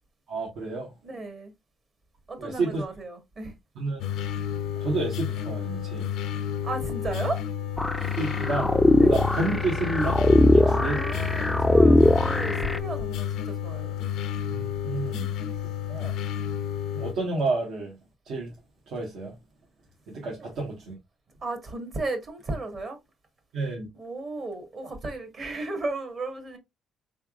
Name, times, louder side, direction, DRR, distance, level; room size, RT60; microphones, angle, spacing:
voice 1, 0.3-0.9 2.4-2.8 3.8-4.0 4.8-6.1 8.2-8.7 9.1-10.2 10.5-11.0 14.5-15.3 15.9-16.1 16.9-17.9 18.2-18.5 18.9-19.3 20.1-20.9 23.5-23.9, right 3 dB, 75° right, 1.2 m, -30 dB
voice 2, 1.0-1.5 2.3-3.5 6.6-7.4 9.0-9.1 10.6-14.0 15.1-15.5 20.4-20.5 21.4-23.0 23.9-26.6, right 2 dB, 45° right, 1.2 m, -34 dB
sound 1, 4.0-17.1, left 9 dB, 85° left, 0.5 m, -31 dB
sound 2, 7.8-12.8, left 2 dB, 10° left, 0.3 m, -21 dB
3.7 x 3.4 x 2.4 m
cardioid pair, 110°, 0 cm